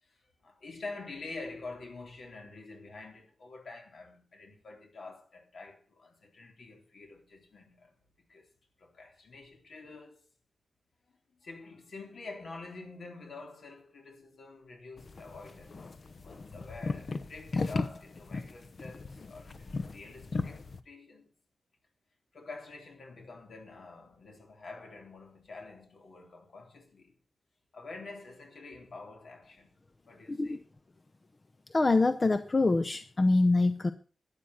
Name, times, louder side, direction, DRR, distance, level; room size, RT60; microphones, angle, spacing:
voice 1, 0.0-8.0 8.3-8.5 8.8-10.2 11.4-15.9 16.2-21.3 22.3-27.2 27.7-29.7 30.1-30.6, left 3 dB, 65° left, 3.8 m, -47 dB
sound 1, 15.0-20.8, left 3 dB, 45° left, 1.0 m, -37 dB
voice 2, 30.3-30.6 31.7-33.9, left 2 dB, 30° left, 0.6 m, -25 dB
12.5 x 10.5 x 5.7 m
wide cardioid pair, 150°, 0 cm